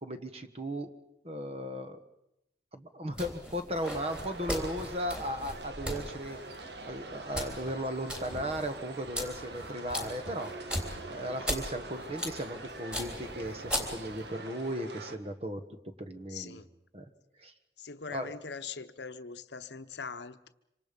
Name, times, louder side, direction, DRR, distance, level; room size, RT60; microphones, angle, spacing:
voice 1, 0.0-0.9 1.2-2.0 2.7-10.6 11.0-15.6 16.0-16.6 16.9-17.0 17.4-17.5 18.1-18.3, equal, 35° right, 8 dB, 1.4 m, -36 dB
sound 1, 3.1-14.3, equal, 5° right, 3.4 m, -39 dB
sound 2, 3.8-15.2, right 2 dB, 70° right, 1.7 m, -44 dB
voice 2, 16.3-16.7 17.8-20.5, left 5 dB, 75° left, 11 dB, 1.0 m, -42 dB
26.0 x 25.5 x 5.4 m, 0.87 s
head